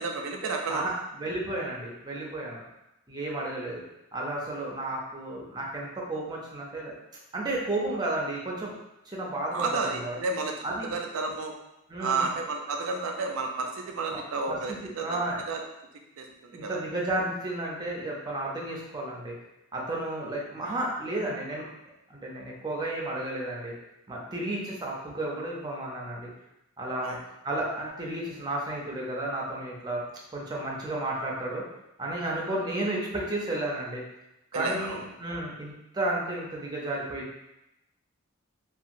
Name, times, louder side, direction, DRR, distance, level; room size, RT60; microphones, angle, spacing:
voice 1, 0.0-0.8 9.5-10.5 10.9-11.5 12.0-15.2 15.5-15.6 16.2-16.3 16.6-16.8 27.0-27.2 34.5-35.0, right 3 dB, 75° right, 3 dB, 0.4 m, -31 dB
voice 2, 0.7-2.6 3.1-3.8 4.1-6.9 7.3-8.7 9.1-10.2 10.6-10.9 11.9-12.3 14.1-14.2 14.5-15.4 16.5-19.3 19.7-21.6 22.1-23.7 24.1-26.3 26.8-27.2 27.4-30.0 30.3-31.6 32.0-34.0 34.5-37.4, right 1 dB, 20° right, -3 dB, 0.5 m, -32 dB
2.8 x 2.3 x 2.5 m, 0.89 s
head